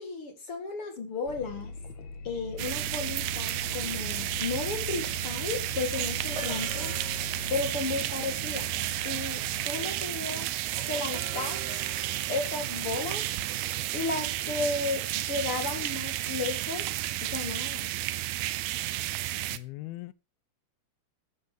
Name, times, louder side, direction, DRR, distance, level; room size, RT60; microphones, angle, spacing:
voice 1, 0.0-1.8 2.2-7.0 7.5-8.8 9.0-10.5 10.9-11.6 12.3-13.3 13.9-16.9 17.2-17.9, left 3 dB, 45° left, 2.3 m, -34 dB
sound 1, 1.3-9.7, left 3 dB, 60° left, 2.1 m, -41 dB
sound 2, 2.6-19.6, right 15 dB, 90° right, 2.7 m, -32 dB
sound 3, 5.7-15.2, right 3 dB, 65° right, 5.4 m, -45 dB
voice 2, 19.5-20.1, left 18 dB, 85° left, 2.6 m, -40 dB
13.0 x 6.8 x 6.4 m
omnidirectional pair, 4.3 m